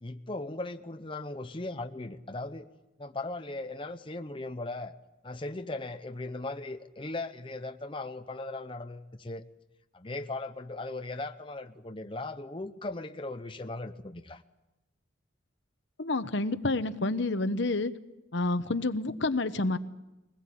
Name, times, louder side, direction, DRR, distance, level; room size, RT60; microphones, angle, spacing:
voice 1, 0.0-2.7 3.0-4.9 5.2-9.4 9.9-14.4, left 2 dB, 25° left, 7 dB, 0.7 m, -38 dB
voice 2, 16.0-17.9 18.3-19.8, left 2 dB, 65° left, 11 dB, 1.0 m, -29 dB
22.5 x 20.0 x 8.5 m, 0.98 s
head